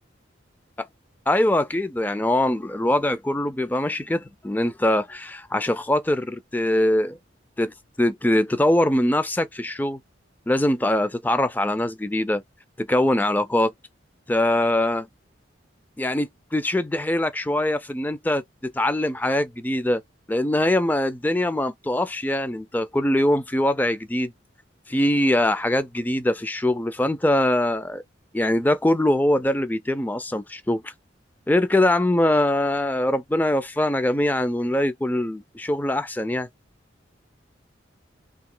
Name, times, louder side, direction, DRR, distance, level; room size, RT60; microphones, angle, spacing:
voice 1, 1.3-7.2 7.6-10.0 10.5-12.4 12.8-13.7 14.3-15.1 16.0-20.0 20.3-24.3 24.9-28.0 28.3-30.9 31.5-36.5, left 1 dB, 10° left, 0.3 m, -22 dB
2.9 x 2.8 x 3.7 m
head